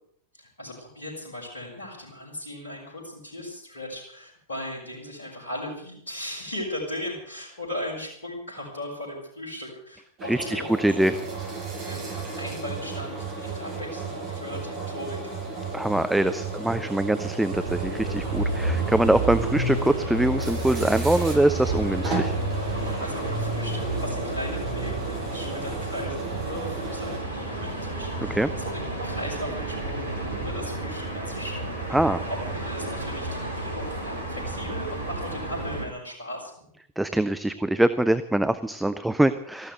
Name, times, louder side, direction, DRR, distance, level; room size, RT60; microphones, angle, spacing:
voice 1, 0.3-11.2 11.9-15.2 22.8-31.8 32.2-36.7, left 1 dB, 70° left, -5 dB, 5.7 m, -37 dB
sound 1, 10.2-27.2, right 4 dB, 35° right, 6.9 m, -34 dB
voice 2, 10.3-11.1 15.7-22.4 28.3-28.5 31.9-32.2 37.0-39.7, right 1 dB, 5° right, 10 dB, 0.7 m, -23 dB
sound 2, 17.5-35.8, right 2 dB, 70° right, 4.1 m, -31 dB
14.5 x 12.5 x 8.0 m, 0.66 s
figure-of-eight pair, 90°, 0 cm